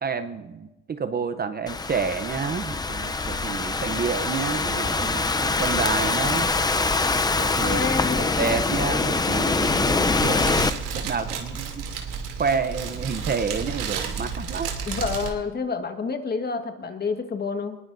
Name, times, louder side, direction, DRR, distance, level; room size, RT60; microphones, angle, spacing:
voice 1, 0.0-6.5 7.3-7.9 8.2-11.9 12.4-14.7, right 5 dB, 30° right, 10 dB, 0.7 m, -29 dB
Thunderstorm / Rain, 1.7-10.7, left 3 dB, 10° left, 0.5 m, -24 dB
voice 2, 7.6-8.4 14.9-17.8, left 4 dB, 30° left, 6 dB, 1.5 m, -28 dB
Fire, 10.2-15.3, right 6 dB, 70° right, 2.8 m, -32 dB
23.5 x 20.5 x 2.6 m, 1.1 s
cardioid pair, 105°, 33 cm